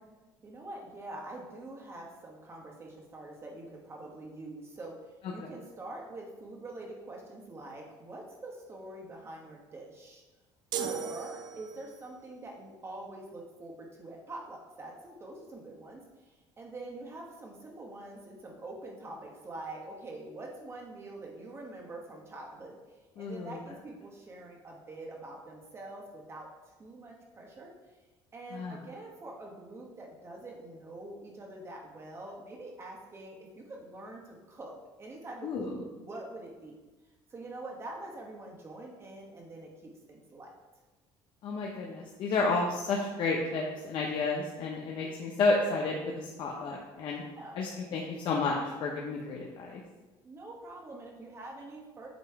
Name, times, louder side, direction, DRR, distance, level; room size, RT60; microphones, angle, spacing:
voice 1, 0.4-10.2 10.7-22.7 23.2-27.7 28.3-36.8 37.3-40.5 45.0-45.1 47.2-47.7 50.2-52.1, right 2 dB, 25° right, -1 dB, 1.2 m, -45 dB
sound 1, 10.7-12.1, right 9 dB, 50° right, 0.3 m, -37 dB
voice 2, 23.2-23.6 28.5-28.8 35.4-35.7 41.4-47.2 47.5-48.5 48.8-49.8, left 3 dB, 55° left, -1 dB, 0.8 m, -31 dB
8.0 x 3.0 x 4.7 m, 1.1 s
cardioid pair, 140°, 10 cm